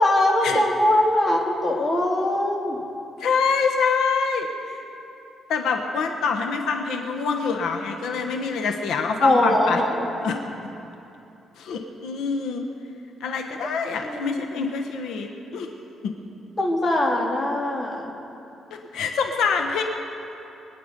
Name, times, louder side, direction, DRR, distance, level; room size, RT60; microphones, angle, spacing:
voice 1, 0.0-2.8 9.2-10.1 14.0-14.4 16.6-18.1, left 1 dB, 20° left, -1 dB, 2.1 m, -21 dB
voice 2, 3.2-4.8 5.5-9.8 10.2-10.4 11.6-12.6 13.2-15.7 16.0-16.1 18.9-19.8, left 5 dB, 85° left, 4 dB, 1.2 m, -25 dB
24.0 x 9.9 x 5.3 m, 2.9 s
cardioid pair, 135°, 0 cm